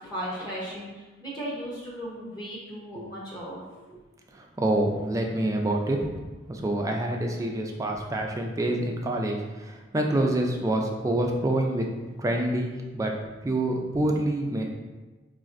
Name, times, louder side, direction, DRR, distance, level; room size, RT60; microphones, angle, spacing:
voice 1, 0.0-3.6, equal, 20° left, -7 dB, 0.8 m, -36 dB
voice 2, 4.3-6.1 6.5-11.9 12.2-13.1 13.4-14.6, right 1 dB, 15° right, 1 dB, 0.3 m, -27 dB
4.0 x 2.4 x 2.5 m, 1.2 s
head